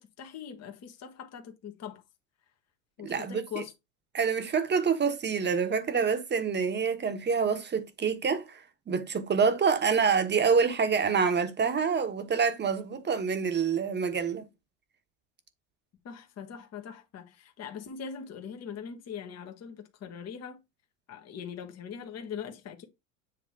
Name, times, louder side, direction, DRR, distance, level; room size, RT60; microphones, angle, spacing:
voice 1, 0.0-2.0 3.0-3.7 16.0-20.6 21.1-22.8, left 7 dB, 40° left, 1.4 m, -41 dB
voice 2, 3.0-3.6 4.1-8.6 8.9-14.5, right 6 dB, 25° right, 1.3 m, -27 dB
7.8 x 3.0 x 4.7 m
hypercardioid pair, 90°, 39 cm